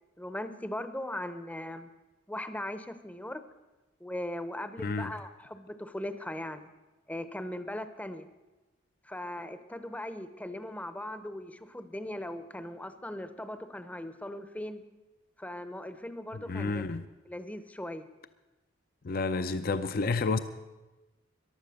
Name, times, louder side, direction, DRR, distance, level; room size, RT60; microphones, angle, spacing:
voice 1, 0.2-1.9 2.3-3.4 4.0-6.7 7.1-8.3 9.0-14.8 15.4-16.9 17.3-18.1, left 1 dB, 10° left, 0.7 m, -39 dB
voice 2, 4.8-5.1 16.3-17.0 19.0-20.4, left 3 dB, 50° left, 0.6 m, -30 dB
14.5 x 11.5 x 6.5 m
head